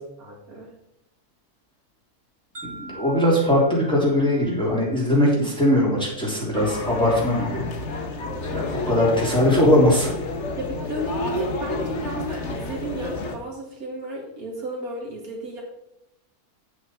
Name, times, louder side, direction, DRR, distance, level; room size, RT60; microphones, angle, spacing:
voice 1, 0.2-0.7 10.6-15.6, right 1 dB, 65° right, -1 dB, 2.3 m, -32 dB
sound 1, 2.5-6.5, right 2 dB, 40° right, 3.0 m, -45 dB
voice 2, 2.6-7.6 8.5-10.1, left 1 dB, 5° left, -5 dB, 3.5 m, -20 dB
sound 2, 6.5-13.4, left 3 dB, 50° left, 1.4 m, -30 dB
9.0 x 8.3 x 4.6 m, 0.85 s
omnidirectional pair, 1.7 m